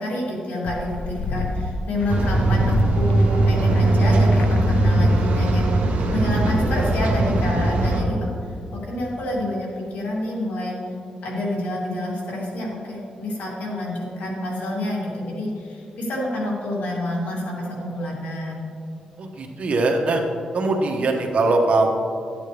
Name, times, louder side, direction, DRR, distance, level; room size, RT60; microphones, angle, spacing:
voice 1, 0.0-8.3 8.7-10.8 11.2-18.7, left 1 dB, 80° left, -4 dB, 2.8 m, -28 dB
sound 1, 0.6-3.9 4.2-4.8 5.0-5.1 5.3-5.5, left 3 dB, 65° left, 0.7 m, -30 dB
sound 2, 2.1-8.0, right 1 dB, 75° right, 1.5 m, -19 dB
voice 2, 19.2-20.2 20.5-21.9, right 2 dB, 55° right, 2 dB, 1.3 m, -21 dB
12.5 x 8.8 x 3.4 m, 2.5 s
cardioid pair, 100°, 3 cm